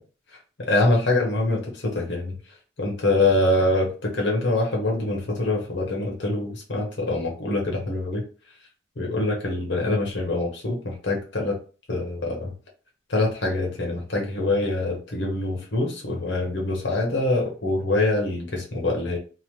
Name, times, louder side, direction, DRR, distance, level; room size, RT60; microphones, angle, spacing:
voice 1, 0.7-2.4 2.8-8.2 9.0-11.6 11.9-12.5 13.1-19.2, left 2 dB, 75° left, 0 dB, 0.8 m, -24 dB
2.9 x 2.1 x 3.0 m, 0.37 s
head